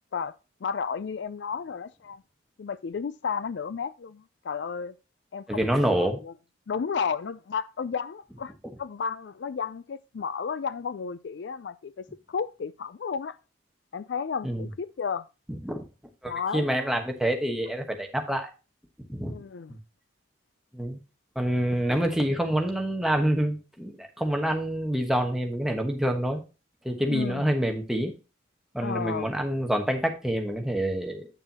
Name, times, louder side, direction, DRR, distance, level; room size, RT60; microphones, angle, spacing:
voice 1, 0.6-2.2 2.6-4.9 5.3-6.3 6.7-8.5 8.8-13.4 13.9-15.3 16.2-16.7 19.3-19.8 27.1-27.5 28.8-29.3, left 6 dB, 65° left, 0.4 m, -33 dB
voice 2, 5.5-6.2 14.4-14.7 15.5-15.8 16.2-18.5 19.1-19.3 19.7-19.8 20.7-21.0 21.3-26.4 26.8-28.1 28.7-31.3, right 1 dB, ahead, 1.2 m, -27 dB
8.9 x 6.7 x 2.8 m
head